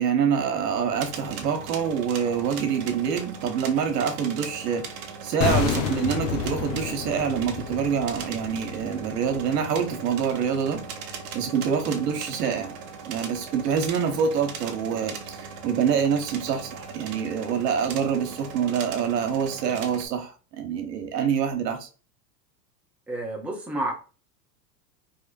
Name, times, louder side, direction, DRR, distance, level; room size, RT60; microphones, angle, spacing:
voice 1, 0.0-12.8 13.1-21.9, right 7 dB, 75° right, 1.2 m, -26 dB
sound 1, 1.0-20.1, right 5 dB, 50° right, 1.0 m, -39 dB
sound 2, 5.4-10.4 10.7-10.8, left 7 dB, 50° left, 0.7 m, -30 dB
voice 2, 23.1-23.9, right 1 dB, 5° right, 0.8 m, -30 dB
3.6 x 2.9 x 2.5 m
hypercardioid pair, 110°, 49 cm